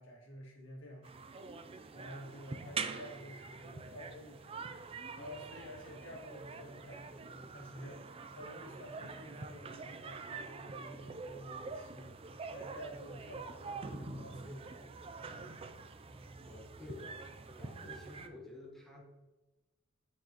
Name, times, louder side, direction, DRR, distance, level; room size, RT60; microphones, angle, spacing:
voice 1, 0.0-1.4 1.6-12.2 12.5-15.1, equal, 70° left, -2 dB, 2.0 m, -51 dB
sound 1, 1.0-18.3, right 4 dB, 30° right, 0.4 m, -45 dB
voice 2, 16.4-19.0, left 2 dB, ahead, -3 dB, 1.1 m, -51 dB
9.2 x 4.7 x 2.9 m, 1.1 s
head